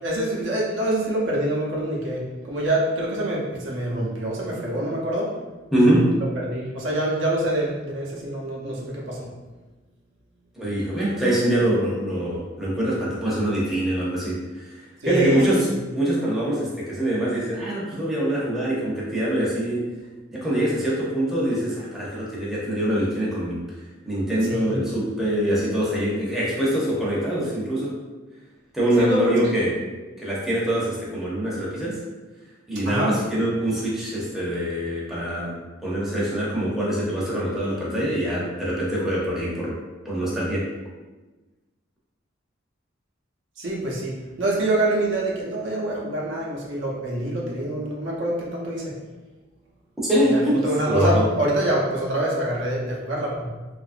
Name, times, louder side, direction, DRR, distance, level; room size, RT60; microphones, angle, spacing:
voice 1, 0.0-5.3 6.0-6.1 6.5-9.3 15.0-15.4 24.4-24.8 29.0-29.4 32.8-33.1 43.6-48.9 50.3-53.5, right 1 dB, 70° right, -3 dB, 0.6 m, -26 dB
voice 2, 5.7-6.2 10.6-19.9 20.3-23.6 24.0-28.0 28.7-29.7 30.2-32.0 32.7-39.8 40.0-40.7 50.1-51.3, right 1 dB, ahead, -7 dB, 0.6 m, -24 dB
2.8 x 2.4 x 2.4 m, 1.2 s
head